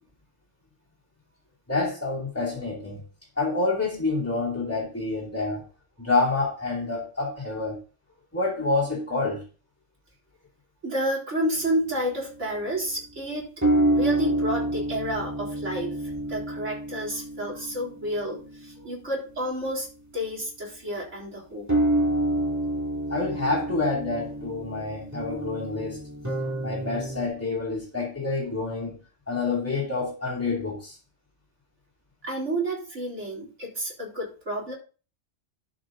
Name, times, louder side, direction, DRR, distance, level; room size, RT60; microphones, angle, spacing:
voice 1, 1.7-3.0 3.4-5.6 6.0-7.8 8.3-9.4 23.1-26.0 26.6-29.0 29.3-31.0, left 3 dB, 10° left, 2.8 m, -28 dB
voice 2, 10.8-13.5 13.9-21.7 32.2-34.7, right 1 dB, 65° right, 4.1 m, -30 dB
sound 1, 11.6-12.6 13.6-19.8 21.7-27.3, right 1 dB, 15° right, 2.3 m, -28 dB
11.5 x 6.3 x 3.9 m
omnidirectional pair, 1.3 m